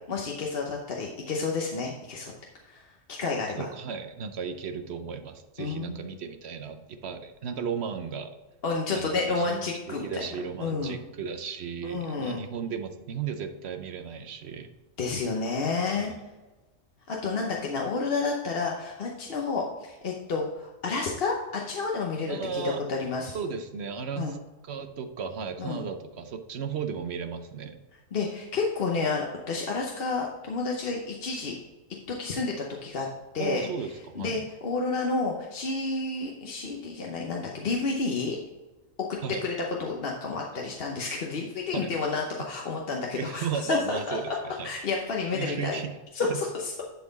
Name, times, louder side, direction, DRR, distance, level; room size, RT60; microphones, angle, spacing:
voice 1, 0.1-2.3 2.6-3.7 5.6-6.1 8.6-10.2 10.6-10.9 11.8-12.4 15.0-16.1 17.1-22.6 22.9-23.4 24.2-24.3 25.6-25.8 28.1-31.5 32.1-33.1 33.3-33.7 34.1-38.4 39.1-39.5 39.8-44.4 44.6-45.8 46.1-46.8, left 4 dB, 50° left, -1 dB, 1.0 m, -30 dB
voice 2, 3.6-8.3 8.9-9.1 9.4-14.7 15.9-16.2 22.3-22.8 23.3-24.4 24.6-27.8 33.4-34.4 39.2-39.4 41.7-42.1 43.1-44.7 45.3-46.0 46.3-46.4, right 6 dB, 60° right, 8 dB, 0.9 m, -35 dB
10.5 x 4.2 x 4.0 m, 1.1 s
omnidirectional pair, 1.4 m